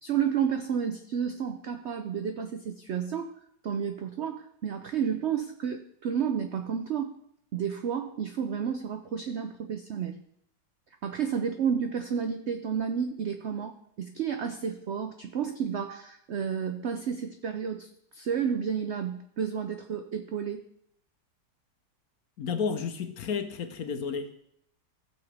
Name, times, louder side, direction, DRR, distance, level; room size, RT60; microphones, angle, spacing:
voice 1, 0.0-3.3 3.6-7.1 7.5-10.2 11.0-20.6, right 7 dB, 80° right, 0.6 m, -31 dB
voice 2, 22.4-24.3, left 6 dB, 60° left, 1.2 m, -31 dB
16.0 x 7.1 x 3.4 m
omnidirectional pair, 1.9 m